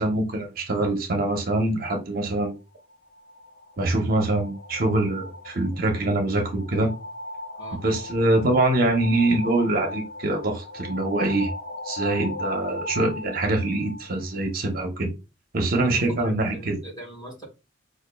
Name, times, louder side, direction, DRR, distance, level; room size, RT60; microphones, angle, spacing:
voice 1, 0.0-2.6 3.8-6.9 7.7-11.5 11.8-15.1 15.5-16.8, right 2 dB, 45° right, 0.7 m, -24 dB
sound 1, 2.8-14.5, left 1 dB, 40° left, 0.5 m, -38 dB
voice 2, 15.8-17.4, right 1 dB, 20° left, 1.7 m, -41 dB
5.0 x 2.4 x 2.2 m
head